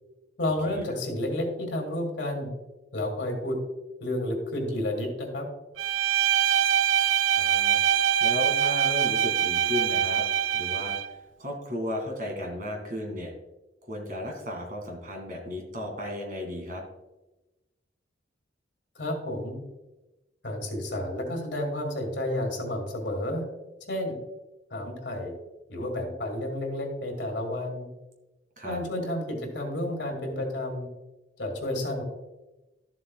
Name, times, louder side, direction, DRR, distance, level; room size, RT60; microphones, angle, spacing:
voice 1, 0.4-2.5 2.9-3.6 4.0-5.5 19.0-19.6 20.4-23.4 23.9-24.2 24.7-25.3 25.7-27.9 28.6-30.9 31.4-32.0, left 1 dB, 75° left, 2 dB, 2.2 m, -31 dB
Bowed string instrument, 5.8-11.1, right 9 dB, 90° right, 0.3 m, -24 dB
voice 2, 7.3-10.2 10.5-13.3 13.8-16.8 28.6-28.8, left 1 dB, 45° right, 2 dB, 2.1 m, -35 dB
12.5 x 7.5 x 2.3 m, 1.0 s
head